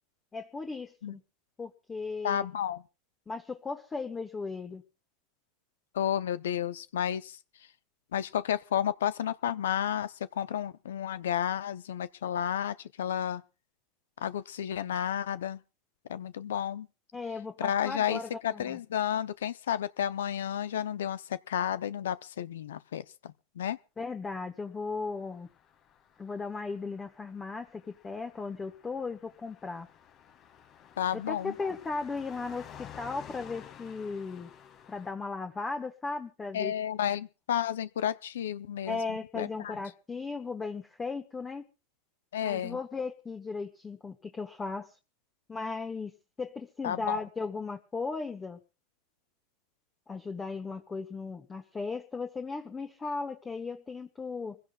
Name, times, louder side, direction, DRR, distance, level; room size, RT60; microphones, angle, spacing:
voice 1, 0.3-1.2 1.6-2.5 3.3-4.8 17.1-18.8 24.0-25.5 26.2-29.9 31.3-34.5 34.9-36.7 38.9-41.6 42.4-44.9 45.5-46.1 46.4-48.6 50.1-54.6, left 4 dB, 20° left, 1.3 m, -36 dB
voice 2, 2.2-2.8 5.9-7.4 8.1-13.4 14.2-15.6 16.1-16.9 17.6-23.8 31.0-31.5 36.5-39.8 42.3-42.8 46.8-47.2, left 10 dB, 90° left, 0.6 m, -32 dB
Car passing by, 25.2-35.1, left 9 dB, 45° left, 1.9 m, -52 dB
26.0 x 16.0 x 2.4 m
supercardioid pair, 110°, 0 cm